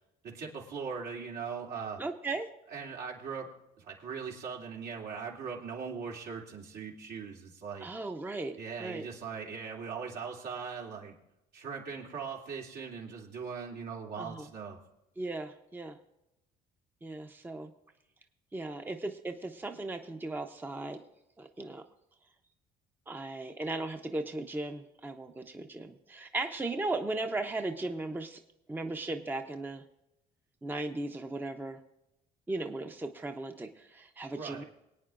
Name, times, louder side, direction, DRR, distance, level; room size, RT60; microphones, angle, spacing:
voice 1, 0.2-2.0 2.7-3.5 3.8-7.9 8.6-11.1 11.5-14.8 34.3-34.7, right 6 dB, 75° right, -2 dB, 2.9 m, -40 dB
voice 2, 2.0-2.5 7.8-9.1 14.2-14.5 15.2-16.0 17.0-17.7 18.5-21.0 21.4-21.8 23.1-28.4 28.7-29.8 30.6-31.8 32.5-34.6, right 2 dB, 10° right, 6 dB, 0.7 m, -37 dB
23.5 x 9.1 x 2.5 m, 0.90 s
cardioid pair, 110°, 17 cm